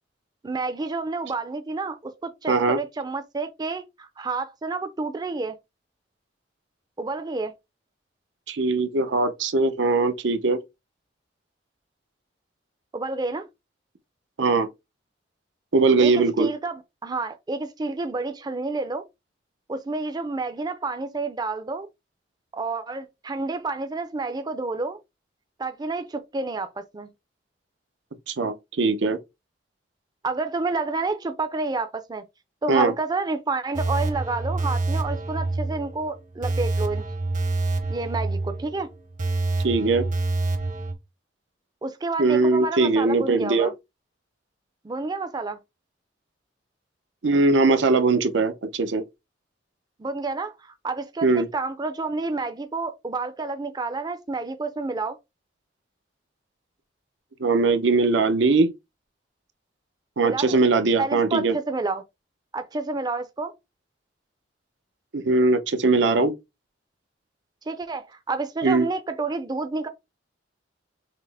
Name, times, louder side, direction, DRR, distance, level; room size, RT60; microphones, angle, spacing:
voice 1, 0.4-5.6 7.0-7.5 12.9-13.5 16.0-19.1 19.7-21.9 22.5-25.0 25.6-27.1 30.2-32.2 32.6-37.0 37.9-38.9 41.8-43.7 44.8-45.6 50.0-55.2 60.2-60.6 61.0-62.0 62.5-63.5 67.7-69.9, right 3 dB, 25° right, 0.4 m, -29 dB
voice 2, 2.5-2.8 8.5-10.6 14.4-14.7 15.7-16.5 28.3-29.2 32.7-32.9 39.6-40.0 42.2-43.7 47.2-49.0 51.2-51.5 57.4-58.7 60.2-61.6 65.1-66.3 68.6-68.9, right 3 dB, 85° right, 0.6 m, -20 dB
sound 1, 33.7-40.9, right 2 dB, 45° right, 0.8 m, -27 dB
5.7 x 2.0 x 3.3 m
head